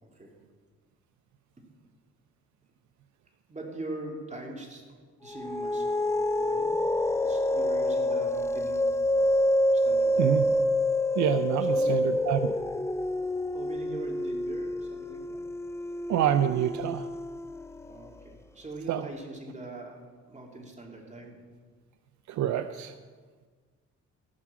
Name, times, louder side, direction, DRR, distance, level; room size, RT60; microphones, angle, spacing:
voice 1, 0.0-0.3 3.5-5.0 5.2-6.7 7.2-8.9 9.7-10.4 11.7-12.0 13.5-15.5 17.9-20.0 20.3-21.4, right 2 dB, 25° right, 0 dB, 2.8 m, -42 dB
sound 1, 5.3-18.1, left 1 dB, 10° left, 0.4 m, -27 dB
voice 2, 11.2-12.6 16.1-17.1 18.9-19.1 22.3-22.9, right 10 dB, 70° right, 11 dB, 0.6 m, -27 dB
15.0 x 5.9 x 7.5 m, 1.5 s
cardioid pair, 90°, 30 cm